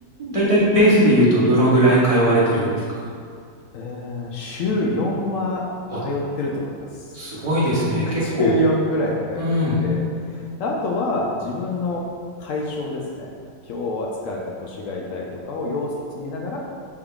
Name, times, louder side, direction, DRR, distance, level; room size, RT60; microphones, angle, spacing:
voice 1, 0.2-3.0 5.9-6.0 7.1-8.5 9.3-9.9, equal, 30° right, -8 dB, 0.7 m, -18 dB
voice 2, 3.7-5.6 5.9-6.9 8.0-9.5 9.8-12.0 12.4-13.3 13.7-16.6, left 2 dB, 80° left, -2 dB, 0.7 m, -26 dB
5.5 x 3.6 x 2.3 m, 2.2 s
omnidirectional pair, 1.9 m